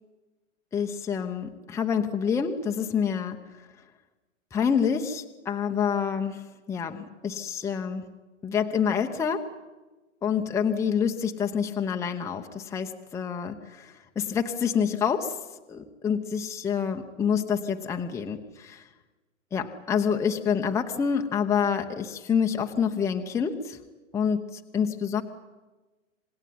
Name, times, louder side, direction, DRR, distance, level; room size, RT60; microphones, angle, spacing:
voice 1, 0.7-3.4 4.5-8.0 8.4-9.5 10.2-15.4 15.7-18.9 19.5-23.8 24.1-25.2, left 7 dB, 5° left, 3 dB, 0.9 m, -27 dB
27.0 x 19.0 x 9.5 m, 1.2 s
hypercardioid pair, 140°, 40 cm